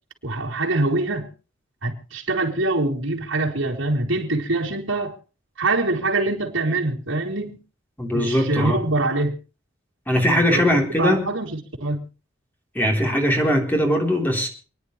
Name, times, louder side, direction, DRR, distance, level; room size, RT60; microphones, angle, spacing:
voice 1, 0.2-1.3 1.8-5.2 5.6-7.6 8.1-9.4 10.3-12.1, right 2 dB, 75° right, 3.2 m, -24 dB
voice 2, 8.0-8.8 10.1-11.3 12.8-14.5, equal, 10° left, 3.6 m, -20 dB
28.5 x 10.0 x 3.2 m
head